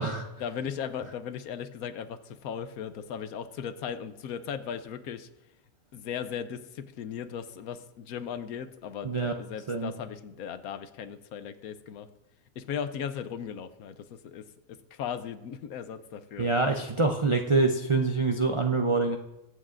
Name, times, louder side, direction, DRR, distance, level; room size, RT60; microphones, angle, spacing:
voice 1, 0.4-5.3 5.9-12.1 12.6-16.5, left 8 dB, 80° left, 11 dB, 1.2 m, -37 dB
voice 2, 16.4-19.2, right 3 dB, 55° right, 3 dB, 0.3 m, -25 dB
22.5 x 8.0 x 2.5 m, 0.94 s
omnidirectional pair, 1.5 m